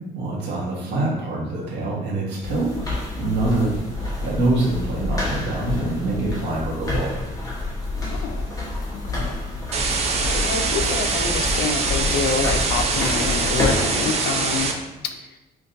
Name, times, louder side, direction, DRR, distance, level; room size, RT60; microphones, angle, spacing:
voice 1, 0.1-7.3, right 2 dB, 80° right, -5 dB, 1.4 m, -25 dB
sound 1, 2.4-14.0, left 2 dB, 20° left, 1.1 m, -28 dB
voice 2, 8.1-8.5 8.9-9.4 10.2-14.7 15.0-15.2, left 5 dB, 70° left, 7 dB, 0.5 m, -27 dB
sound 2, 9.7-14.7, right 4 dB, 40° right, 0.6 m, -23 dB
6.0 x 2.6 x 2.6 m, 1.0 s
cardioid pair, 110°, 17 cm